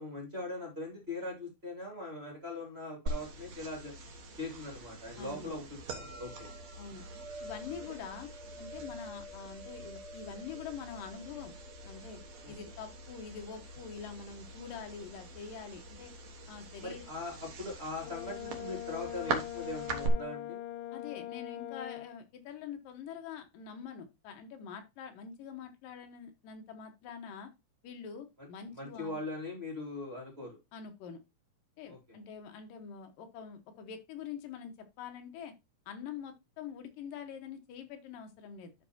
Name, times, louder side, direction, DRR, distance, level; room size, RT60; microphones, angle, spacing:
voice 1, 0.0-3.9 4.4-6.5 12.4-12.5 16.8-20.6 28.7-30.6 31.9-32.0, left 2 dB, 20° right, 0 dB, 2.3 m, -40 dB
sound 1, 3.1-20.1, right 3 dB, 60° right, 2.1 m, -43 dB
voice 2, 5.2-5.5 6.8-7.0 7.4-8.3 8.6-11.5 11.8-12.2 12.5-16.1 16.5-17.0 20.9-27.5 27.8-29.2 30.7-31.2 31.8-35.5 35.9-38.7, left 7 dB, 65° left, 5 dB, 2.7 m, -45 dB
Brass instrument, 18.0-22.1, left 13 dB, 85° left, 1.9 m, -42 dB
12.0 x 4.8 x 2.8 m, 0.24 s
omnidirectional pair, 4.5 m